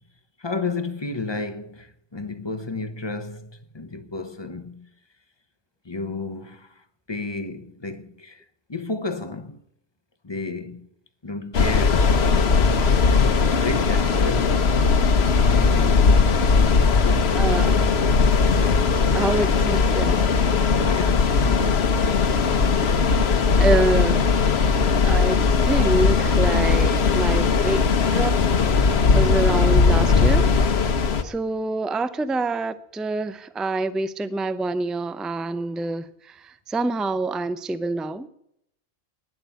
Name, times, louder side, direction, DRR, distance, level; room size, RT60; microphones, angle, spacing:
voice 1, 0.4-4.9 5.8-6.7 7.1-9.6 10.2-10.9 11.2-12.8 13.5-14.7 15.6-16.3 17.0-17.5 20.7-21.9, left 3 dB, 25° left, 0.9 m, -32 dB
sound 1, 11.5-31.2, left 5 dB, 75° left, 1.2 m, -19 dB
voice 2, 17.4-17.8 19.1-20.2 23.6-24.2 25.0-25.4 25.6-27.8 28.1-28.4 28.8-28.9 29.1-30.5 31.2-38.3, right 2 dB, ahead, 0.4 m, -26 dB
11.5 x 10.5 x 9.1 m
omnidirectional pair, 1.1 m